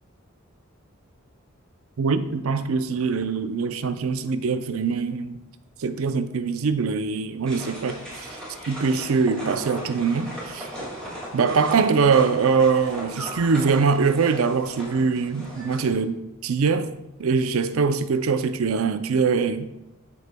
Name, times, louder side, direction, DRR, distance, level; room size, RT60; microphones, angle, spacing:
voice 1, 2.0-5.4 5.8-8.3 8.7-10.7 11.3-16.9 17.2-19.7, right 5 dB, 80° right, 0.5 m, -23 dB
sound 1, 7.5-15.9, equal, 5° left, 2.0 m, -37 dB
13.0 x 4.8 x 2.2 m
head